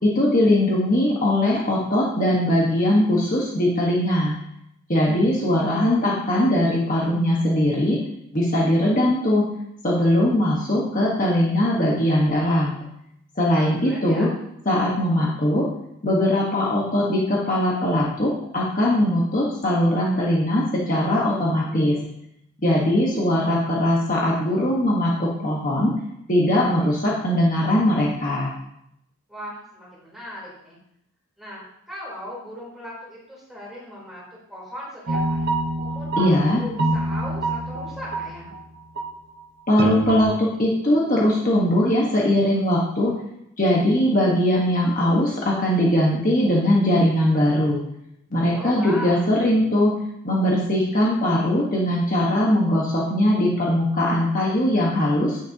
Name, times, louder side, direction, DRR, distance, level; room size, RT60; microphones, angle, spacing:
voice 1, 0.0-4.3 4.9-8.0 8.3-9.5 9.8-12.8 13.4-14.3 14.6-15.6 16.0-22.0 22.6-25.9 26.3-28.5 36.2-36.6 39.7-43.1 43.6-47.8 48.3-49.9 50.2-55.4, left 1 dB, 35° left, -4 dB, 1.4 m, -20 dB
voice 2, 13.5-14.3 29.3-30.8 31.4-35.5 35.8-38.5 48.5-49.4, equal, ahead, -6 dB, 3.8 m, -38 dB
sound 1, 35.1-38.6 39.0-39.2 39.8-40.2, right 2 dB, 50° right, 1.1 m, -26 dB
10.0 x 9.8 x 2.9 m, 0.79 s
head